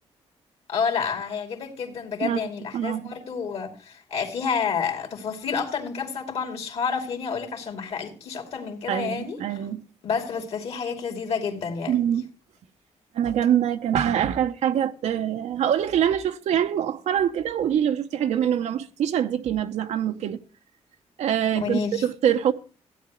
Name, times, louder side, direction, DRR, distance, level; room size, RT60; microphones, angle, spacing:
voice 1, 0.7-9.6 10.0-12.1 21.6-22.0, left 6 dB, 60° left, 2.7 m, -29 dB
voice 2, 2.7-3.1 8.9-9.8 11.9-12.3 13.1-20.4 21.2-22.5, right 9 dB, 75° right, 0.7 m, -24 dB
16.0 x 9.3 x 3.0 m
wide cardioid pair, 165°, 12 cm